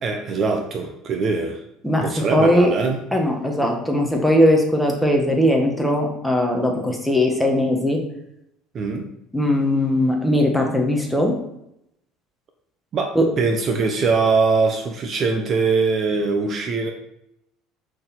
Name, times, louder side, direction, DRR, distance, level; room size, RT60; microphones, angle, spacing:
voice 1, 0.0-1.6 2.0-3.0 8.7-9.1 12.9-16.9, right 4 dB, 35° right, 4 dB, 0.9 m, -22 dB
voice 2, 1.8-2.7 3.1-8.0 9.3-11.4 13.1-13.2, left 1 dB, ahead, 1 dB, 1.4 m, -19 dB
6.6 x 6.5 x 4.3 m, 0.80 s
cardioid pair, 140°, 0 cm